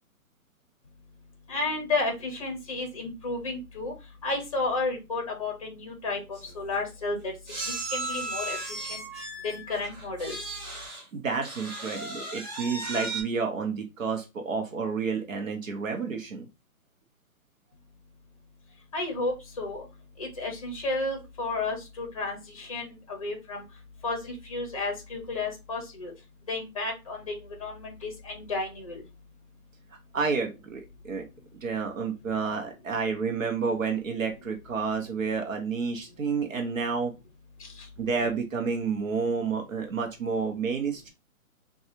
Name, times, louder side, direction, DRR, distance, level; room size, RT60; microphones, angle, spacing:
voice 1, 1.5-3.9 4.2-7.2 7.9-8.6 8.9-9.0 9.4-10.4 18.9-19.8 20.2-23.6 24.0-26.1 26.5-27.3 27.6-29.0, left 3 dB, 25° left, 1 dB, 0.7 m, -32 dB
sound 1, 6.0-6.1 6.3-6.5 7.5-11.1 11.4-13.2, right 2 dB, 30° right, 0.9 m, -36 dB
voice 2, 11.1-16.5 30.1-31.2 31.6-37.1 38.0-41.1, right 5 dB, 65° right, 4 dB, 0.9 m, -30 dB
3.9 x 2.3 x 2.9 m, 0.25 s
hypercardioid pair, 170°, 44 cm